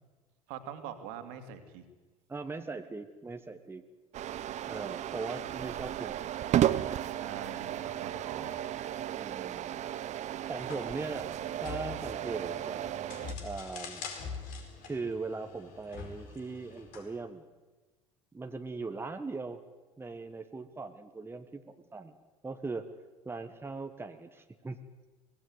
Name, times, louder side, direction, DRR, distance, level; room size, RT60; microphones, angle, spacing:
voice 1, 0.5-1.8 7.2-8.7, right 9 dB, 60° right, 8 dB, 2.7 m, -43 dB
voice 2, 2.3-3.8 4.7-6.1 9.2-9.9 10.5-11.3 11.6-12.8 13.4-14.1 14.8-17.4 18.3-19.6 20.0-22.2 22.4-22.9 23.2-24.8, right 3 dB, 15° right, 7 dB, 1.5 m, -39 dB
sound 1, 4.1-13.3, right 12 dB, 45° right, 1.1 m, -34 dB
sound 2, 10.6-17.1, left 5 dB, 55° left, 4.8 m, -45 dB
23.5 x 19.0 x 8.2 m, 1.2 s
figure-of-eight pair, 70°, 17 cm